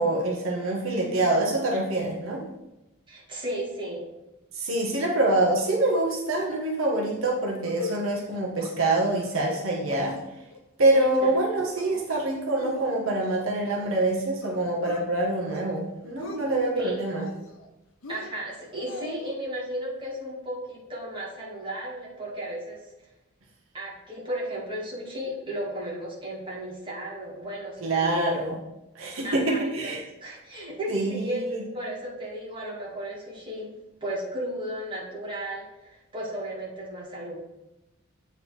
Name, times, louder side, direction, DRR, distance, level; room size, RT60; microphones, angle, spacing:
voice 1, 0.0-2.4 4.5-10.2 10.8-17.2 27.8-28.5 28.9-30.0 30.9-31.6, right 2 dB, 70° right, -2 dB, 1.3 m, -25 dB
voice 2, 3.1-4.1 10.9-11.4 16.7-16.9 18.1-22.8 23.7-28.4 29.2-29.9 30.2-31.4 31.7-33.7 34.0-37.4, equal, 25° right, -4 dB, 2.0 m, -34 dB
sound 1, 5.6-6.1 6.4-6.5 6.8-7.1 7.5-8.0 8.3-8.7 9.1-9.6 9.9-10.6 11.0-11.4 11.8-12.2 12.6-14.1 14.4-15.0 15.4-15.8 16.0-16.7 17.1-17.7 18.0-19.3, left 4 dB, 75° left, 0.8 m, -42 dB
8.4 x 4.0 x 4.4 m, 0.96 s
head